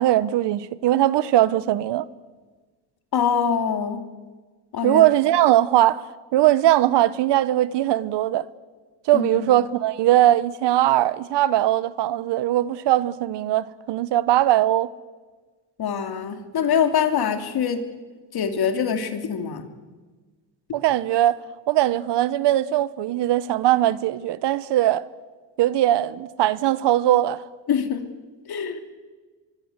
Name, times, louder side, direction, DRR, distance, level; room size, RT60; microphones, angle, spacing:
voice 1, 0.0-2.1 4.8-6.0 6.3-8.5 9.1-14.9 20.7-21.4 21.7-25.0 25.6-27.4, right 13 dB, 65° right, 1.1 m, -20 dB
voice 2, 3.1-4.0 4.7-5.0 9.1-9.5 15.8-17.8 18.3-19.6 27.7-28.1 28.5-28.8, left 7 dB, 55° left, 3.2 m, -24 dB
25.0 x 23.5 x 8.2 m
cardioid pair, 105°, 46 cm